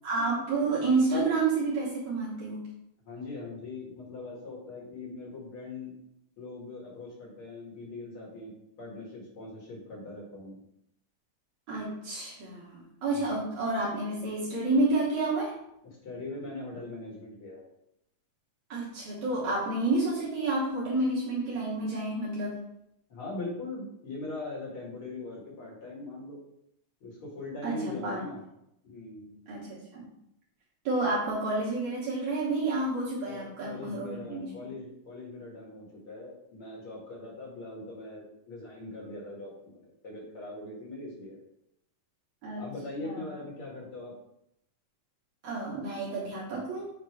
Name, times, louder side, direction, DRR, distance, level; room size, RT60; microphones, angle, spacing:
voice 1, 0.0-2.7 11.7-15.6 18.7-22.6 27.6-28.2 29.5-30.1 30.8-34.5 42.4-42.6 43.0-43.4 45.4-46.9, right 2 dB, 65° right, -6 dB, 2.4 m, -30 dB
voice 2, 3.1-6.0 6.4-8.5 8.8-10.6 13.1-13.4 16.0-17.7 23.1-26.4 27.0-28.4 28.8-29.4 33.3-41.4 42.6-44.1, left 2 dB, 45° left, -3 dB, 2.2 m, -41 dB
7.7 x 2.9 x 4.8 m, 0.80 s
omnidirectional pair, 4.0 m